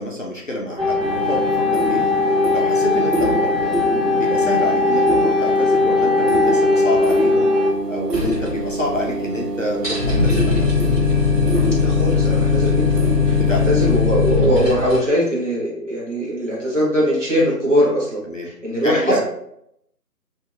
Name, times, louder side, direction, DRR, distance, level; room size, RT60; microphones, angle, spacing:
voice 1, 0.0-3.8 4.2-7.5 7.9-10.7 13.3-13.8 18.2-18.5 18.8-19.2, left 1 dB, 55° left, -2 dB, 0.5 m, -28 dB
sound 1, 0.8-7.7, left 3 dB, ahead, 0.4 m, -19 dB
sound 2, 1.0-14.0, right 2 dB, 85° right, 0.7 m, -26 dB
sound 3, 8.1-9.1 9.4-9.5 9.7-15.0, left 5 dB, 25° right, 1.2 m, -19 dB
voice 2, 11.8-12.9 13.3-19.2, equal, 45° right, -6 dB, 1.3 m, -21 dB
2.8 x 2.7 x 2.3 m, 0.76 s
figure-of-eight pair, 160°, 49 cm